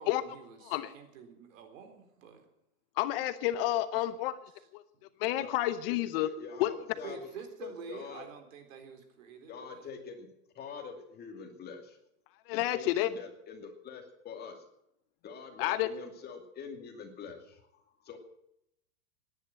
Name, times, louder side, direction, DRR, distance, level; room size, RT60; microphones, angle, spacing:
voice 1, 0.0-2.5 3.9-4.0 4.6-4.7 7.0-9.9, right 6 dB, 65° right, 6 dB, 4.1 m, -48 dB
voice 2, 3.0-4.4 4.7-4.8 5.2-6.3 6.6-6.7 12.5-13.1 15.6-15.9, left 15 dB, 40° left, 13 dB, 0.8 m, -29 dB
voice 3, 5.9-7.3 7.6-8.2 9.5-10.3 10.5-12.0 12.5-14.6 15.2-18.2, left 5 dB, 20° left, 4 dB, 2.5 m, -45 dB
17.5 x 10.5 x 7.7 m, 0.78 s
supercardioid pair, 150°, 42 cm